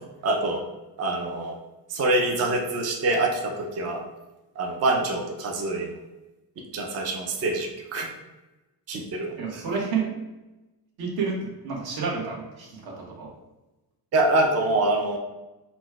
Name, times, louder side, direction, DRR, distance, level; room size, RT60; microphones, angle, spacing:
voice 1, 0.2-0.6 1.0-1.5 1.9-4.0 4.6-5.9 6.7-8.1 8.9-9.6 14.1-15.2, right 2 dB, 40° right, 1 dB, 0.6 m, -25 dB
voice 2, 9.4-10.1 11.0-13.3, right 5 dB, 60° right, -3 dB, 1.4 m, -30 dB
4.1 x 2.2 x 4.6 m, 1.0 s
cardioid pair, 155°, 41 cm